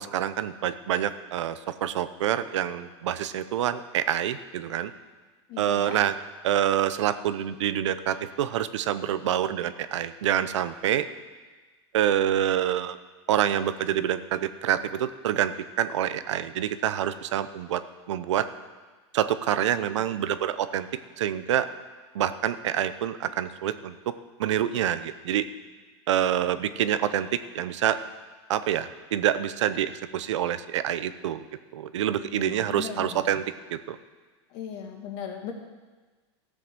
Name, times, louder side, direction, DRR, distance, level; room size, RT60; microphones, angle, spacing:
voice 1, 0.0-4.9 5.6-6.1 6.4-11.1 11.9-13.0 13.3-17.8 18.1-18.5 19.1-20.9 21.2-21.7 22.1-24.1 24.4-25.5 26.1-28.0 28.5-31.4 31.7-33.4 33.7-34.0, right 10 dB, 85° right, 13 dB, 0.8 m, -27 dB
voice 2, 5.5-6.0 32.2-33.3 34.5-35.5, left 7 dB, 55° left, 2 dB, 2.3 m, -38 dB
14.5 x 7.7 x 6.2 m, 1.3 s
supercardioid pair, 130°, 15 cm